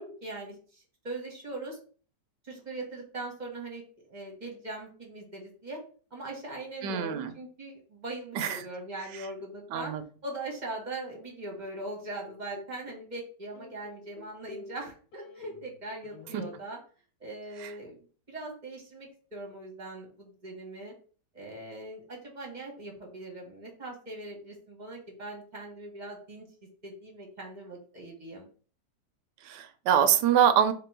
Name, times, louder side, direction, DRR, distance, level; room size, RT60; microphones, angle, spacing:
voice 1, 0.0-1.8 2.4-5.8 6.1-9.9 10.2-16.8 17.2-20.9 21.3-26.5 26.8-28.5, right 2 dB, 30° right, -1 dB, 1.0 m, -41 dB
voice 2, 6.8-7.3 8.3-8.6 9.7-10.0 16.3-16.4 17.6-17.7 29.4-30.7, right 9 dB, 80° right, 10 dB, 1.2 m, -24 dB
sound 1, 12.3-13.1 13.5-15.8 16.0-16.6, left 3 dB, 85° left, 1.4 m, -48 dB
3.6 x 2.9 x 4.6 m, 0.41 s
omnidirectional pair, 1.9 m